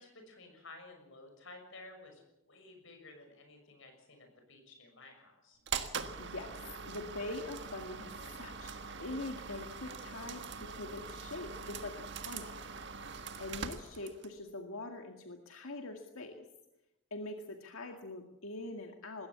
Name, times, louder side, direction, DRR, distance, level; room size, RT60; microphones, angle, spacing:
voice 1, 0.0-5.6, left 2 dB, 60° left, 5 dB, 6.4 m, -54 dB
sound 1, 5.7-14.4, right 5 dB, 55° right, 1.5 m, -43 dB
voice 2, 6.2-6.6 6.9-8.1 8.4-8.7 9.0-12.6 13.4-16.5 17.1-19.3, left 2 dB, 75° left, 4 dB, 2.0 m, -43 dB
21.0 x 16.5 x 8.3 m, 0.89 s
head